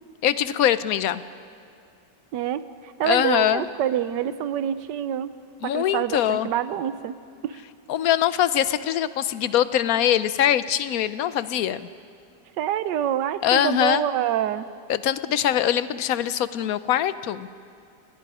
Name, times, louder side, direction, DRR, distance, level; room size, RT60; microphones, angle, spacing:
voice 1, 0.2-1.2 3.0-3.7 5.6-6.5 7.9-11.9 13.4-14.0 14.9-17.5, left 11 dB, 65° left, 14 dB, 1.0 m, -22 dB
voice 2, 2.3-5.4 5.6-7.2 7.4-7.6 12.6-14.7, right 10 dB, 85° right, 13 dB, 1.4 m, -26 dB
29.0 x 20.5 x 4.9 m, 2.4 s
omnidirectional pair, 1.8 m